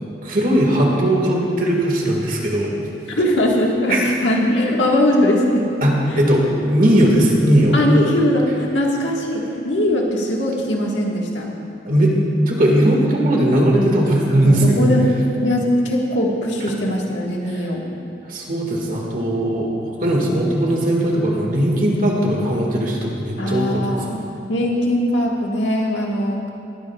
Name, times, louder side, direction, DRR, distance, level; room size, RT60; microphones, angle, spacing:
voice 1, 0.2-2.7 3.9-4.0 5.8-7.7 11.9-12.1 12.5-14.9 18.3-19.7 20.0-24.0, right 1 dB, 45° right, -1 dB, 1.8 m, -18 dB
voice 2, 3.2-5.7 6.1-6.2 7.7-11.5 14.4-15.1 15.4-17.8 23.4-24.2 24.5-26.4, left 1 dB, 90° left, -1 dB, 1.6 m, -20 dB
20.0 x 10.0 x 2.4 m, 2.6 s
head